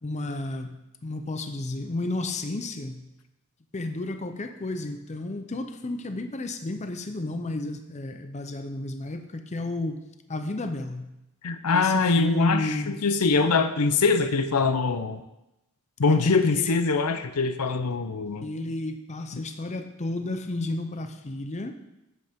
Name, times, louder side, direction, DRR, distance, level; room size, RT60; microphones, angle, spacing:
voice 1, 0.0-3.1 3.7-10.0 10.3-11.1 11.7-12.9 16.1-16.7 18.4-21.8, left 2 dB, 30° left, 7 dB, 0.6 m, -32 dB
voice 2, 11.4-15.2 16.0-18.5 19.3-19.4, left 4 dB, 85° left, 9 dB, 0.7 m, -23 dB
11.0 x 7.9 x 3.6 m, 0.92 s
head